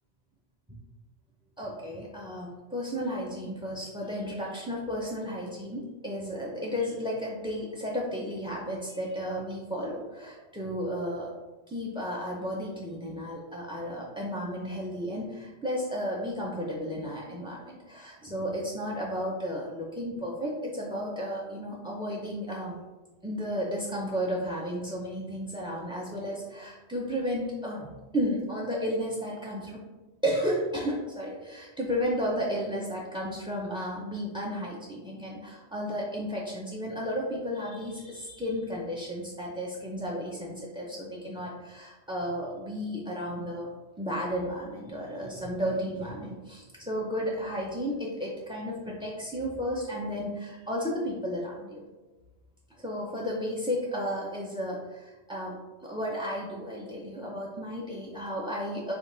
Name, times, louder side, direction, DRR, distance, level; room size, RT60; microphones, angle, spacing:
voice 1, 1.6-11.3 11.7-22.8 23.2-29.8 30.2-43.7 44.0-51.8 52.8-58.9, equal, 10° right, -3 dB, 0.3 m, -33 dB
5.2 x 2.4 x 3.9 m, 1.2 s
omnidirectional pair, 1.1 m